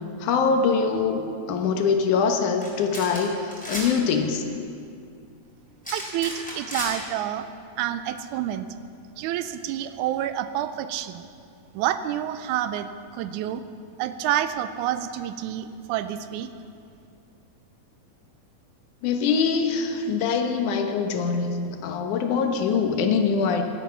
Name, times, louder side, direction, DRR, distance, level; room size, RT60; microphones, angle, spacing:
voice 1, 0.2-4.5 19.0-23.6, left 5 dB, 85° left, 5 dB, 2.6 m, -23 dB
sound 1, 2.6-2.7 2.9-3.2 3.5-3.9 5.8-6.9, equal, 5° left, 4.0 m, -33 dB
voice 2, 5.9-7.5 7.8-8.7 9.2-11.3 11.7-12.9 13.1-13.6 14.0-16.5, right 11 dB, 90° right, 11 dB, 2.1 m, -28 dB
17.0 x 11.5 x 5.7 m, 2.4 s
omnidirectional pair, 3.5 m